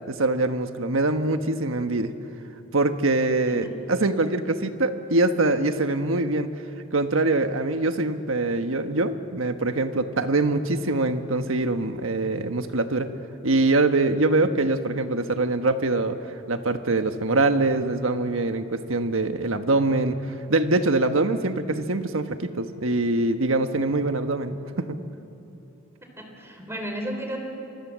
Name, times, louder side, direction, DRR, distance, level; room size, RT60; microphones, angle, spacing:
voice 1, 0.1-2.1 2.7-6.5 6.9-13.1 13.4-16.2 16.5-20.2 20.5-25.0, right 2 dB, 80° right, 8 dB, 1.4 m, -24 dB
voice 2, 26.2-27.4, right 1 dB, 15° right, 3 dB, 3.8 m, -33 dB
27.0 x 24.0 x 7.5 m, 2.9 s
head